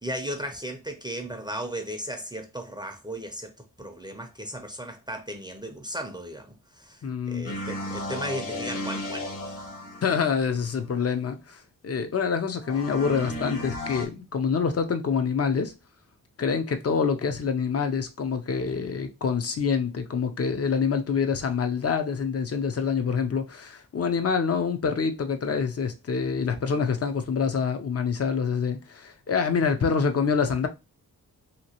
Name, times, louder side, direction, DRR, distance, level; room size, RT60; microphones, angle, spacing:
voice 1, 0.0-3.5 3.8-9.7, equal, 15° right, 0.5 m, -36 dB
voice 2, 7.0-7.5 10.0-11.6 11.8-15.7 16.4-30.7, left 6 dB, 45° left, 0.6 m, -26 dB
sound 1, 7.4-10.7 12.6-14.1, left 1 dB, 70° left, 1.3 m, -34 dB
2.9 x 2.9 x 2.8 m
wide cardioid pair, 80°, 34 cm